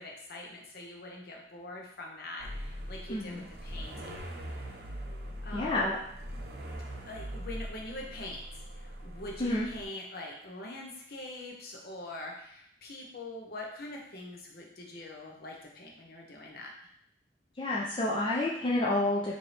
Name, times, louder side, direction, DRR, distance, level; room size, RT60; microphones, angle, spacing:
voice 1, 0.0-4.1 4.5-4.7 5.4-5.9 7.1-16.7, left 1 dB, 60° left, 0 dB, 0.8 m, -44 dB
sound 1, 2.4-9.8, equal, 60° right, 0.7 m, -42 dB
voice 2, 3.1-3.4 5.5-6.0 9.4-9.7 17.6-19.4, left 2 dB, 30° left, -4 dB, 0.4 m, -29 dB
4.4 x 2.7 x 3.2 m, 0.70 s
head